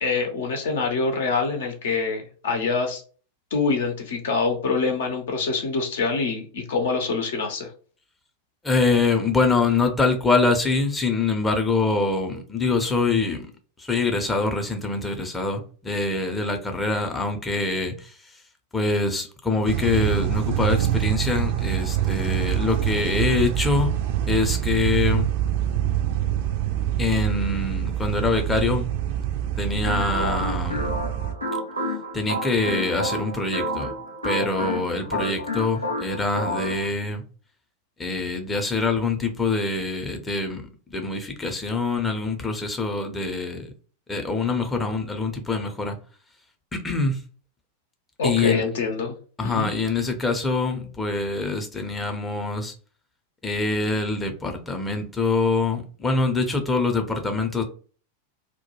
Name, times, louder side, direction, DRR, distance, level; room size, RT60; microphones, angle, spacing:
voice 1, 0.0-3.0 3.5-7.7 48.2-49.1 49.4-49.7, left 4 dB, 60° left, 0.6 m, -25 dB
voice 2, 8.6-13.5 13.8-18.1 18.7-23.9 24.3-25.3 27.0-28.9 29.6-30.9 32.1-33.9 34.2-37.2 38.0-40.6 40.9-43.7 44.1-46.0 46.7-47.2 48.2-48.6 49.4-52.7 53.4-57.6, left 3 dB, 15° left, 0.6 m, -24 dB
sound 1, 19.7-31.3, right 12 dB, 50° right, 0.4 m, -25 dB
sound 2, 29.8-36.9, equal, 85° right, 0.7 m, -30 dB
2.2 x 2.1 x 3.0 m
figure-of-eight pair, 90°, 0 cm